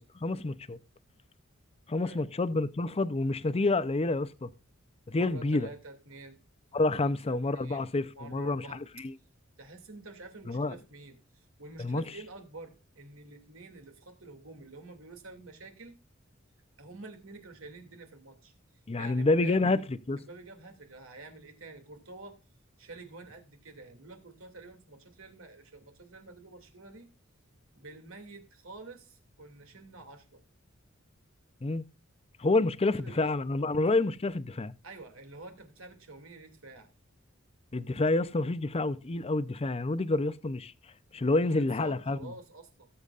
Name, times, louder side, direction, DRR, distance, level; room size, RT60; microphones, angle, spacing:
voice 1, 0.1-0.8 1.9-4.5 5.1-5.7 6.7-9.1 10.5-10.7 11.8-12.0 18.9-20.2 31.6-31.8 32.4-34.7 37.7-40.7 41.1-42.3, left 2 dB, 30° left, 0.6 m, -28 dB
voice 2, 5.2-6.4 7.0-7.9 8.2-8.8 9.6-15.9 16.8-18.5 19.0-19.9 20.2-22.4 22.8-27.1 27.7-30.4 32.8-33.3 34.8-36.9 41.3-42.9, right 3 dB, 85° right, 2.5 m, -48 dB
18.5 x 8.0 x 2.5 m
head